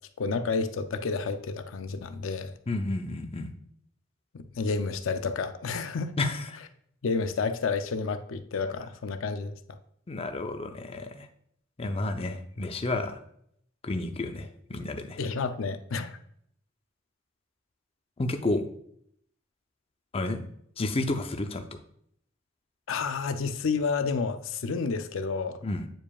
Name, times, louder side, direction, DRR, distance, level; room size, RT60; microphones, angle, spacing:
voice 1, 0.2-2.5 4.3-6.2 7.0-9.6 15.2-16.2 22.9-25.6, left 4 dB, 80° left, 0.5 m, -30 dB
voice 2, 2.7-3.5 6.2-6.6 8.6-8.7 10.1-11.3 11.8-13.2 13.8-15.2 18.2-18.7 20.1-20.5 20.8-21.6 25.6-25.9, left 2 dB, 30° left, 0.6 m, -31 dB
8.8 x 4.9 x 2.3 m
head